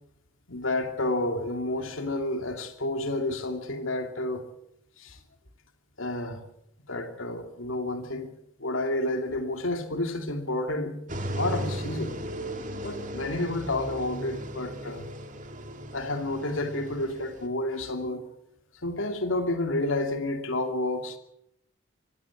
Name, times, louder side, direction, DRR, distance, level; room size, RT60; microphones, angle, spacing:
voice 1, 0.5-4.4 5.0-5.2 6.0-6.4 6.9-8.3 8.6-10.9 11.3-12.1 12.8-15.1 15.9-18.3 18.8-21.2, left 2 dB, 85° left, 2.7 m, -30 dB
sound 1, 11.1-17.5, right 1 dB, 40° right, 2.4 m, -36 dB
25.5 x 15.5 x 7.3 m
head